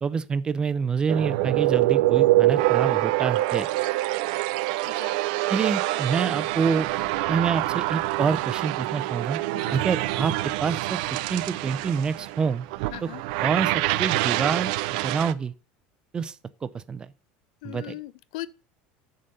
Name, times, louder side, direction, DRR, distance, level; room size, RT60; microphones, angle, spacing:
voice 1, 0.0-3.7 5.5-6.9 7.3-9.4 9.7-11.0 11.3-12.7 13.0-13.1 13.4-13.7 14.0-15.5 16.1-16.4 16.6-17.1 17.6-18.0, right 6 dB, 20° right, 0.4 m, -27 dB
sound 1, 1.1-15.3, right 17 dB, 75° right, 0.5 m, -25 dB
voice 2, 9.5-9.9 12.9-13.2 17.6-18.5, left 17 dB, 85° left, 0.5 m, -39 dB
7.5 x 4.1 x 6.5 m
supercardioid pair, 145°, 4 cm